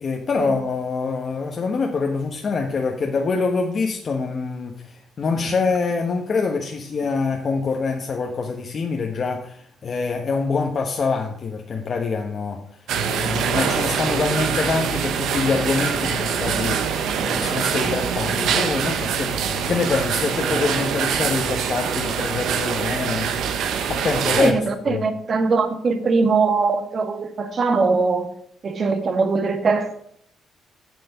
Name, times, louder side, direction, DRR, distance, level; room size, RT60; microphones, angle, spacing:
voice 1, 0.0-12.6 13.1-23.3 23.9-24.6 24.9-25.0, left 4 dB, 45° left, 1.1 m, -25 dB
sound 1, 12.9-24.5, right 7 dB, 80° right, 1.1 m, -24 dB
voice 2, 24.3-28.3 28.6-29.9, right 4 dB, 50° right, 1.5 m, -21 dB
8.0 x 6.7 x 5.2 m
cardioid pair, 90°, 0 cm